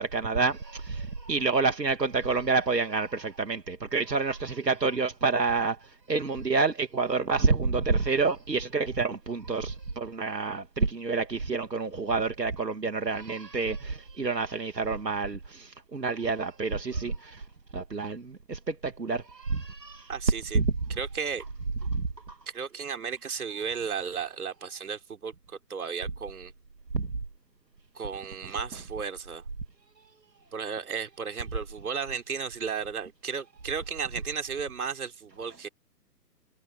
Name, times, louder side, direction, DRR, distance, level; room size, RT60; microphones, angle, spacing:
voice 1, 0.0-17.4 17.7-20.1 20.5-20.7 21.9-22.4 26.9-27.1, right 4 dB, 80° right, 2.1 m, -28 dB
voice 2, 20.1-20.6 21.0-21.4 22.5-26.5 27.9-29.5 30.5-35.7, right 6 dB, 60° right, 3.9 m, -34 dB
figure-of-eight pair, 130°, 49 cm